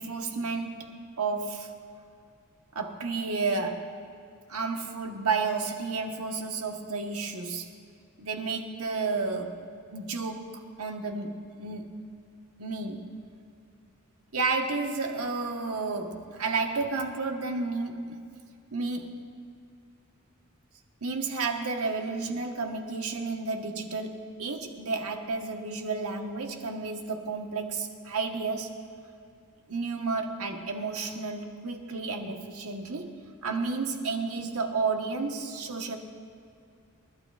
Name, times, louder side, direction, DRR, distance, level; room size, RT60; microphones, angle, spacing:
voice 1, 0.0-1.8 2.7-4.0 4.5-7.7 8.2-9.6 9.9-12.0 12.6-13.1 14.3-18.2 18.7-19.2 21.0-28.8 29.7-33.1 33.4-36.0, right 4 dB, 90° right, 3 dB, 1.3 m, -31 dB
28.5 x 12.0 x 2.5 m, 2.5 s
head